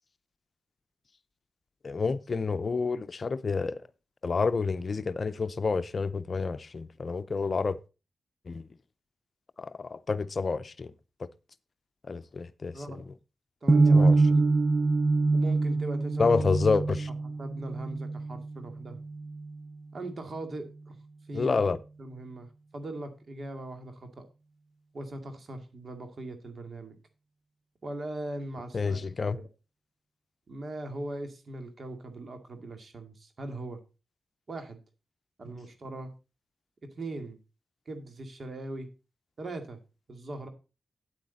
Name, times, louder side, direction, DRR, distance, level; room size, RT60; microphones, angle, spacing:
voice 1, 1.8-3.8 4.2-7.8 8.5-8.7 9.6-10.9 12.1-12.8 13.9-14.2 16.2-17.1 21.3-21.8 28.7-29.4, left 4 dB, 50° left, 0.6 m, -28 dB
voice 2, 13.6-14.6 15.3-16.4 17.4-19.0 19.9-21.0 21.3-21.6 22.0-22.5 22.7-24.2 24.9-27.0 27.8-29.0 29.3-29.5 30.5-33.8 34.5-34.8 35.4-36.1 37.0-37.4 37.9-38.9 39.4-39.8 40.1-40.5, right 2 dB, 55° right, 2.3 m, -40 dB
sound 1, 13.7-19.7, right 3 dB, 30° right, 0.6 m, -25 dB
9.3 x 8.2 x 4.0 m
cardioid pair, 60°, 0 cm